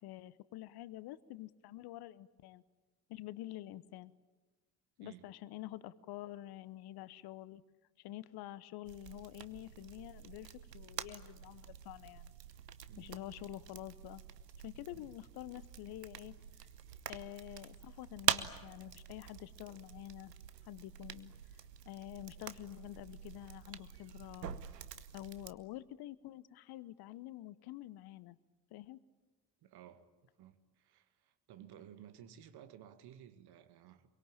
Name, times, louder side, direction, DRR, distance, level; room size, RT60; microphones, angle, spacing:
voice 1, 0.0-2.6 3.1-4.1 5.0-7.6 8.0-12.3 13.0-14.2 14.6-16.3 17.1-20.3 20.6-21.3 21.8-24.5 25.1-28.4 28.7-29.0, left 15 dB, 50° left, 1.0 m, -48 dB
sound 1, 8.8-25.5, right 9 dB, 80° right, 1.0 m, -44 dB
voice 2, 29.6-30.1 30.4-34.1, right 10 dB, 50° right, 2.0 m, -56 dB
25.5 x 23.5 x 8.9 m
figure-of-eight pair, 55°, 48 cm